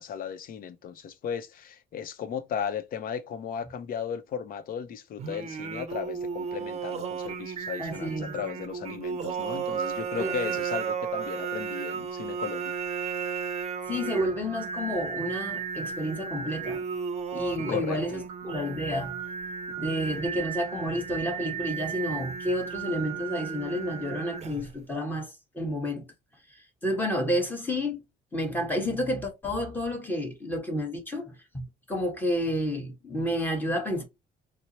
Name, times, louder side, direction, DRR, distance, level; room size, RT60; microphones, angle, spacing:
voice 1, 0.0-12.7 17.7-18.2, left 8 dB, 55° left, 0.6 m, -35 dB
Singing, 5.2-24.8, right 6 dB, 40° right, 0.6 m, -34 dB
voice 2, 7.8-8.4 10.2-10.3 13.9-16.8 17.3-19.2 19.8-26.1 26.8-28.0 28.3-34.0, equal, 10° left, 1.2 m, -30 dB
4.3 x 2.0 x 2.8 m
cardioid pair, 110°, 17 cm